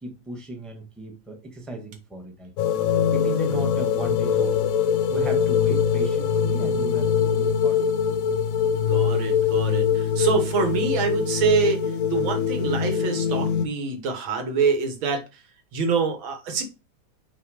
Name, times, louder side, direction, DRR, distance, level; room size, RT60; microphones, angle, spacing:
voice 1, 0.0-2.5 3.1-4.6 5.0-8.0, right 2 dB, ahead, 0.9 m, -36 dB
sound 1, 2.6-13.7, left 7 dB, 80° left, 0.7 m, -23 dB
voice 2, 8.9-15.4 15.7-16.6, right 5 dB, 90° right, 2.1 m, -25 dB
6.1 x 3.5 x 4.9 m
omnidirectional pair, 2.1 m